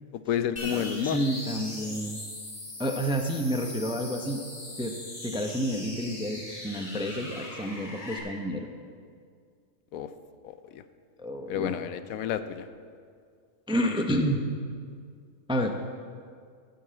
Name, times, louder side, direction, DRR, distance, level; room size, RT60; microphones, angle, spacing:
voice 1, 0.1-1.2 9.9-10.1 10.4-10.8 11.5-12.7, left 9 dB, 90° left, 11 dB, 1.1 m, -30 dB
sound 1, 0.6-8.2, left 1 dB, 35° left, 2.1 m, -40 dB
voice 2, 0.7-2.2 2.8-4.4 4.8-4.9 5.2-8.7 11.2-11.8 13.7-14.4 15.5-15.8, equal, 5° right, 4 dB, 0.4 m, -29 dB
14.0 x 5.5 x 7.5 m, 2.1 s
omnidirectional pair, 1.4 m